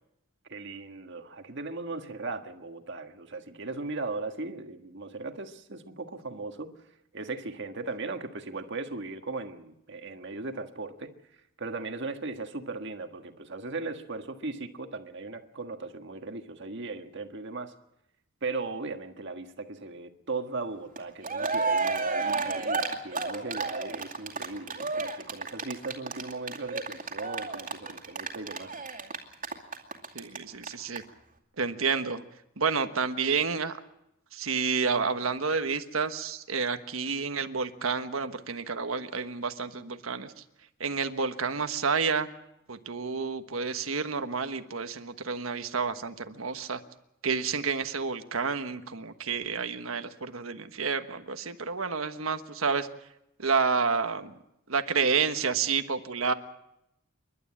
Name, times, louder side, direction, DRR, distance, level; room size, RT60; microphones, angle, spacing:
voice 1, 0.5-6.7 7.1-11.1 11.6-17.7 18.4-28.8, right 3 dB, 60° right, 6 dB, 1.6 m, -37 dB
Cheering, 21.0-21.1 21.2-30.4 30.6-30.7 30.9-31.0, right 4 dB, 40° right, 2.4 m, -31 dB
voice 2, 30.1-31.0 31.6-32.2 32.6-33.8 34.3-40.3 40.8-42.3 42.7-46.8 47.2-52.9 53.4-54.3 54.7-56.3, right 5 dB, 80° right, 8 dB, 1.3 m, -29 dB
28.5 x 12.0 x 8.7 m, 0.83 s
head